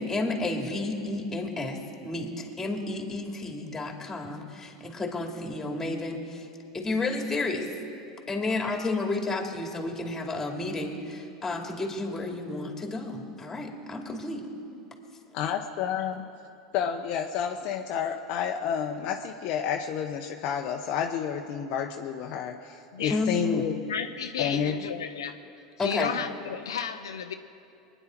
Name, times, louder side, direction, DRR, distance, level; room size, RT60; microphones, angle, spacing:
voice 1, 0.0-6.5 6.7-7.7 8.3-14.5 23.1-23.8 25.8-26.1, left 2 dB, 15° left, 2 dB, 2.7 m, -31 dB
voice 2, 15.3-16.3 16.7-23.8 24.4-24.8, left 8 dB, 55° left, 3 dB, 0.8 m, -30 dB
voice 3, 23.9-25.3 25.8-27.3, left 7 dB, 80° left, 6 dB, 0.6 m, -33 dB
24.0 x 10.0 x 4.6 m, 2.6 s
hypercardioid pair, 85°, 2 cm